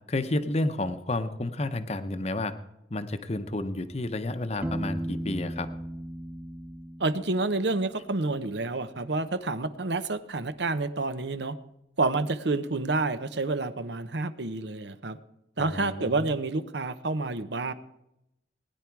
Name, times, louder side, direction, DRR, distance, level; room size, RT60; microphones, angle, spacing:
voice 1, 0.1-2.5 2.9-5.7 15.6-16.3, left 2 dB, 35° left, 10 dB, 0.8 m, -31 dB
Piano, 4.6-8.3, right 1 dB, 10° right, 0.5 m, -36 dB
voice 2, 7.0-11.6 12.0-15.2 15.6-17.7, right 3 dB, 70° right, 12 dB, 0.9 m, -29 dB
20.0 x 10.0 x 4.7 m, 0.85 s
head